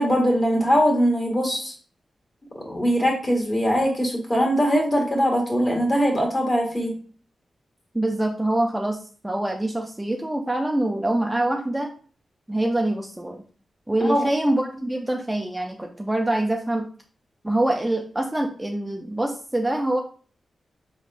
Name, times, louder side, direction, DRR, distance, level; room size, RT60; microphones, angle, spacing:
voice 1, 0.0-1.7 2.6-6.9 14.0-14.3, equal, 30° left, 0 dB, 1.6 m, -21 dB
voice 2, 7.9-9.0 9.2-11.9 12.5-13.4 13.9-16.8 17.4-20.0, right 1 dB, 10° right, 1 dB, 0.4 m, -24 dB
5.2 x 3.4 x 2.5 m, 0.43 s
wide cardioid pair, 110°, 0 cm